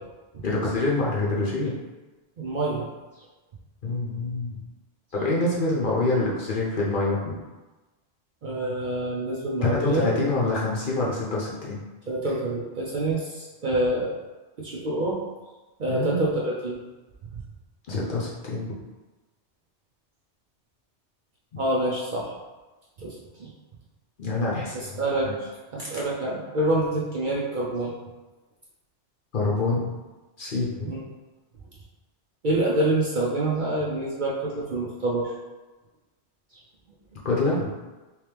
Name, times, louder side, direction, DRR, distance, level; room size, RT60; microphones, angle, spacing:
voice 1, 0.4-1.7 3.8-4.5 5.1-7.3 9.6-11.8 15.9-16.2 17.9-18.7 24.2-24.9 25.2-25.3 29.3-29.9 30.4-30.9 37.2-37.7, left 2 dB, 50° left, -5 dB, 0.9 m, -26 dB
voice 2, 2.4-2.9 8.4-10.1 12.1-14.1 14.6-15.2 15.8-16.8 21.6-22.3 23.0-23.5 24.7-25.3 25.7-27.9 30.8-31.0 32.4-35.3, right 1 dB, 50° right, -4 dB, 0.7 m, -26 dB
3.4 x 3.1 x 3.3 m, 1.2 s
omnidirectional pair, 1.2 m